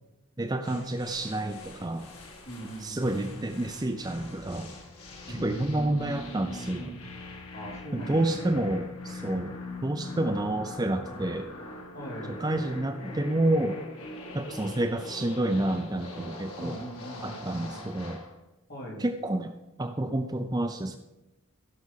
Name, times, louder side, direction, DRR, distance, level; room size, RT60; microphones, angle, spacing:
voice 1, 0.4-2.1 2.8-4.7 5.3-6.9 7.9-9.6 9.8-11.5 12.3-13.8 14.3-16.8 17.2-18.2 19.0-19.5 19.8-21.0, right 1 dB, 15° right, 6 dB, 0.5 m, -29 dB
sound 1, 0.6-18.3, left 2 dB, 85° left, 2.0 m, -43 dB
voice 2, 2.4-3.5 5.3-7.0 7.5-8.6 11.9-12.4 16.6-17.9 18.7-19.0, right 1 dB, 45° left, -4 dB, 4.2 m, -40 dB
15.0 x 6.2 x 5.7 m, 1.0 s
head